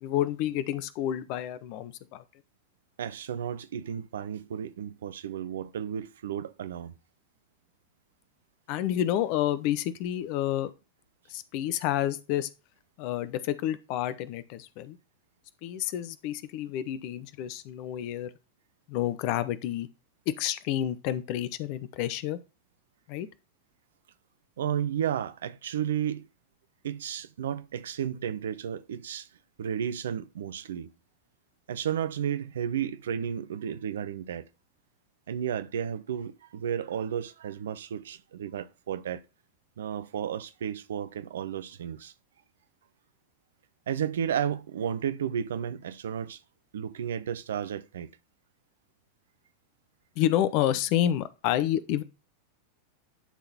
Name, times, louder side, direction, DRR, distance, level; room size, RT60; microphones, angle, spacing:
voice 1, 0.0-2.2 8.7-10.7 11.3-12.5 13.0-15.0 15.6-18.3 18.9-19.9 20.3-22.4 23.1-23.3 50.2-52.0, left 12 dB, 45° left, 0.7 m, -29 dB
voice 2, 3.0-6.9 24.6-26.3 26.8-29.3 29.6-30.9 31.7-34.5 35.3-39.2 39.8-42.1 43.9-46.4 46.7-48.1, right 9 dB, 60° right, 0.6 m, -33 dB
11.0 x 3.9 x 4.2 m
figure-of-eight pair, 90°, 0 cm